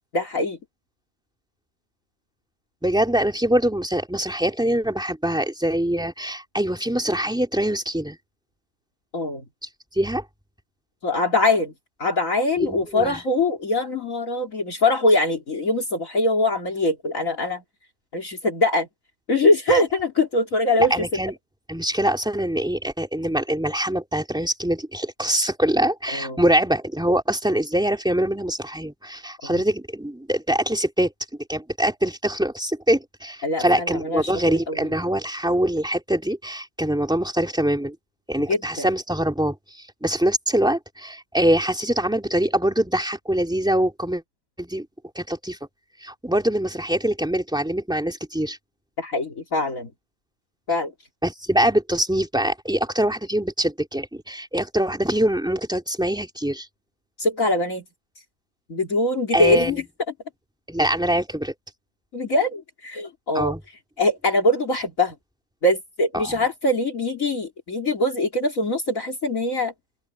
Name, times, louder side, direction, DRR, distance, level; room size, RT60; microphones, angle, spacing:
voice 1, 0.1-0.6 9.1-9.4 11.0-11.7 12.0-17.6 18.1-18.9 19.3-21.1 26.1-26.4 29.4-29.5 33.4-34.3 34.7-34.9 38.5-38.9 49.0-49.9 50.7-50.9 57.2-57.8 58.7-59.8 62.1-63.5 64.0-65.1 65.6-69.7, left 2 dB, 55° left, 3.1 m, -22 dB
voice 2, 2.8-8.2 9.9-10.2 12.6-13.2 20.9-21.3 21.7-31.1 31.5-37.9 38.3-39.5 40.0-44.2 44.6-44.9 45.1-45.6 46.0-48.6 51.2-56.7 59.3-59.8 60.7-61.5 63.3-63.6 66.1-66.3, right 1 dB, 5° right, 3.0 m, -23 dB
open air
omnidirectional pair, 1.7 m